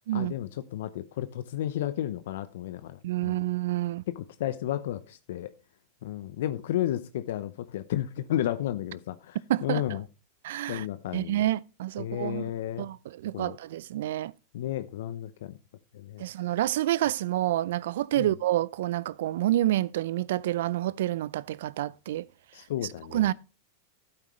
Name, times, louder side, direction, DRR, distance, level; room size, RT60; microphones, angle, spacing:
voice 1, 0.1-3.4 4.2-5.5 6.0-10.0 10.7-11.4 12.0-12.9 13.3-13.6 14.5-15.5 15.9-16.2 18.2-18.3 22.5-23.2, left 12 dB, 70° left, 0.7 m, -32 dB
voice 2, 3.0-4.0 9.5-10.0 10.4-10.9 11.1-12.4 12.8-14.3 16.2-22.2 23.1-23.3, right 14 dB, 70° right, 0.4 m, -28 dB
12.0 x 8.9 x 3.1 m
hypercardioid pair, 105°, 0 cm